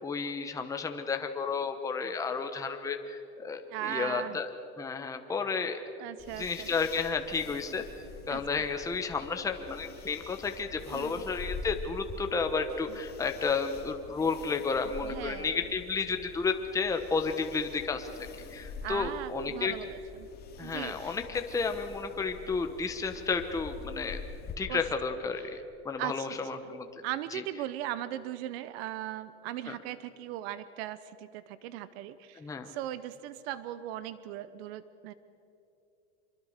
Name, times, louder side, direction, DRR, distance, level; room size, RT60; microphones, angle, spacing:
voice 1, 0.0-4.5 4.8-5.8 6.4-7.8 8.3-18.1 18.5-19.7 20.6-24.2 24.6-25.6 25.8-26.9 27.3-27.4 29.7-29.8 32.4-32.7, left 5 dB, 10° left, 6 dB, 1.0 m, -32 dB
voice 2, 3.7-4.4 6.0-6.7 8.3-8.4 10.9-11.2 12.9-13.0 14.8-15.5 18.8-20.3 20.6-21.2 24.7-24.8 25.4-25.6 26.0-26.3 26.6-26.7 27.0-35.1, right 13 dB, 65° right, 15 dB, 0.9 m, -38 dB
sound 1, 6.2-24.6, left 4 dB, 30° left, 2.4 m, -46 dB
25.0 x 22.5 x 6.6 m, 2.8 s
supercardioid pair, 155°, 33 cm